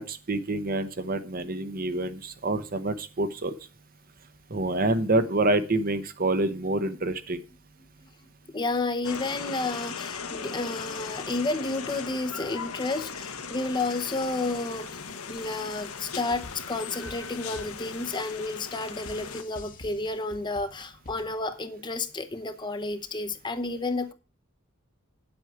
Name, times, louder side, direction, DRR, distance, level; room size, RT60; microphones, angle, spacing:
voice 1, 0.0-3.5 4.5-7.4, right 2 dB, 40° right, 0.9 m, -27 dB
voice 2, 8.5-15.0 15.3-24.1, left 2 dB, 20° left, 0.8 m, -31 dB
sound 1, 9.0-19.4, left 5 dB, 75° left, 1.2 m, -38 dB
sound 2, 16.3-21.5, left 2 dB, 40° left, 1.2 m, -47 dB
9.8 x 7.9 x 4.7 m
head